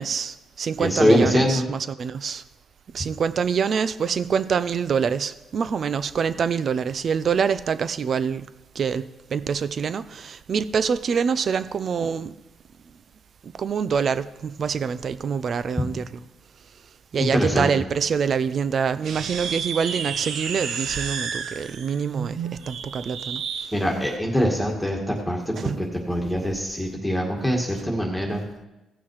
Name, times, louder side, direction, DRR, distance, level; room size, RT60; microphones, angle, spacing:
voice 1, 0.0-2.4 2.9-8.5 8.7-12.3 13.4-16.2 17.1-22.4 22.7-23.4 23.7-23.8 25.6-25.8, right 6 dB, 50° right, 0.5 m, -25 dB
voice 2, 0.8-1.7 17.2-17.7 23.7-25.7 26.1-28.4, equal, ahead, 2.0 m, -23 dB
sound 1, 19.0-23.7, right 6 dB, 75° right, 0.9 m, -31 dB
16.0 x 6.0 x 4.8 m
cardioid pair, 90°, 0 cm